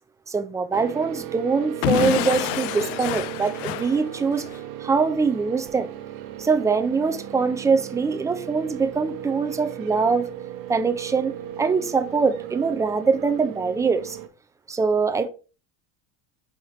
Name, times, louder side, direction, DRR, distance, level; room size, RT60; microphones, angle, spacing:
voice 1, 0.3-4.5 4.8-5.9 6.4-10.3 10.7-14.2 14.7-15.3, right 5 dB, 10° right, 0.4 m, -23 dB
sound 1, 0.7-14.3, right 11 dB, 60° right, 1.0 m, -36 dB
Explosion / Shatter, 1.8-4.6, left 16 dB, 75° left, 0.6 m, -27 dB
5.8 x 4.2 x 4.9 m
cardioid pair, 145°, 37 cm